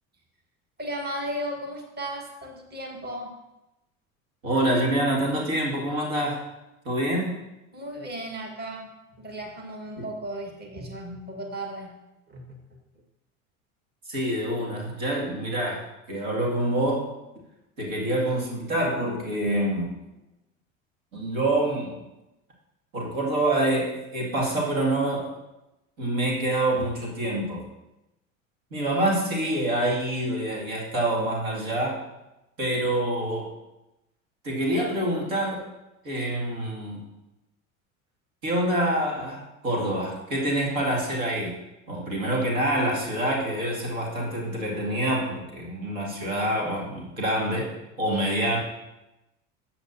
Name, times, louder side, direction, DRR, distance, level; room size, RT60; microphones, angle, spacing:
voice 1, 0.8-3.4 7.7-8.9 9.2-11.9 12.3-12.6, right 1 dB, 25° right, 2 dB, 1.6 m, -35 dB
voice 2, 4.4-6.4 6.8-7.4 10.0-10.1 14.1-17.1 17.8-19.9 21.1-21.9 22.9-25.3 26.0-27.6 28.7-32.0 32.6-33.5 34.4-35.7 36.0-37.0 38.4-41.6 41.9-47.7 48.0-48.6, right 1 dB, 80° right, -2 dB, 2.5 m, -26 dB
13.0 x 7.3 x 2.8 m, 0.95 s
hypercardioid pair, 75°, 41 cm